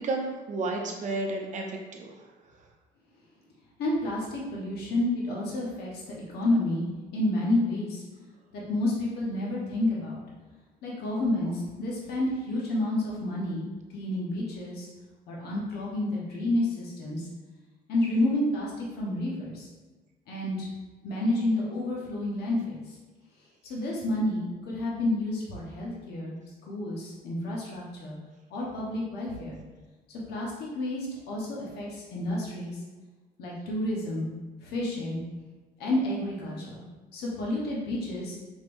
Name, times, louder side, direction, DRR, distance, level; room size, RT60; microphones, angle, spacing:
voice 1, 0.0-2.1, right 2 dB, 45° right, 1 dB, 0.7 m, -32 dB
voice 2, 3.8-6.9 7.1-8.0 8.5-10.2 10.8-14.9 15.3-17.3 17.9-19.7 20.3-20.7 21.0-23.0 23.6-26.4 26.7-28.2 28.5-29.6 30.1-32.8 33.4-34.3 34.6-35.2 35.8-36.8 37.1-38.4, left 1 dB, 75° left, -4 dB, 1.1 m, -30 dB
5.2 x 3.4 x 2.6 m, 1.3 s
cardioid pair, 110°, 17 cm